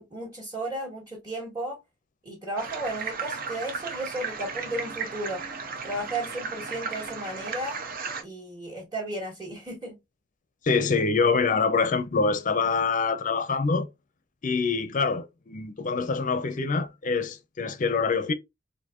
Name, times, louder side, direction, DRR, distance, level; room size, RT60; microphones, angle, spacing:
voice 1, 0.0-1.8 2.2-5.4 5.8-7.8 8.2-10.0, right 1 dB, 20° right, 1.3 m, -34 dB
sound 1, 2.6-8.2, right 5 dB, 50° right, 0.6 m, -35 dB
voice 2, 10.6-13.9 14.4-18.3, left 4 dB, 40° left, 0.5 m, -25 dB
4.3 x 2.6 x 2.4 m
head